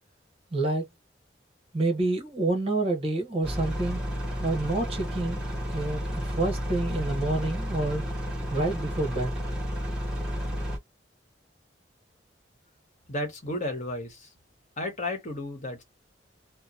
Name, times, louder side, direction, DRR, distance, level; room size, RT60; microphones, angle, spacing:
voice 1, 0.5-0.9 1.7-4.0 4.4-5.4 5.7-8.0 8.5-9.3, right 2 dB, 30° right, 1.0 m, -28 dB
sound 1, 3.4-10.8, equal, 5° right, 0.9 m, -32 dB
voice 2, 13.1-14.3 14.8-15.8, left 1 dB, 40° left, 1.0 m, -33 dB
2.9 x 2.0 x 2.4 m
head